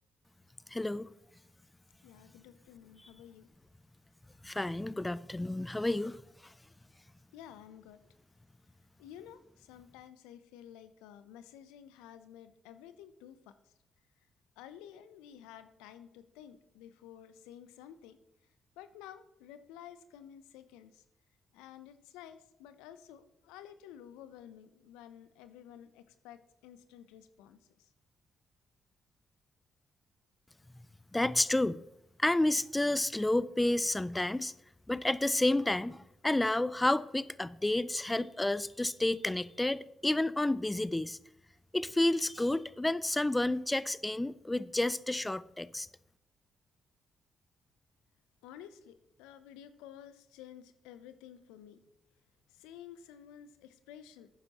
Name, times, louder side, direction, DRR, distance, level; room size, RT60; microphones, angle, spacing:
voice 1, 0.7-1.1 4.4-6.2 31.1-31.8 32.2-34.5 34.9-41.2 41.7-45.9, left 1 dB, 15° left, 0.4 m, -30 dB
voice 2, 2.0-3.5 7.3-8.0 9.0-13.5 14.6-18.2 18.8-21.0 21.5-27.9 48.4-51.8 52.5-54.3, left 10 dB, 80° left, 0.5 m, -52 dB
11.5 x 9.6 x 2.9 m
hypercardioid pair, 45°, 0 cm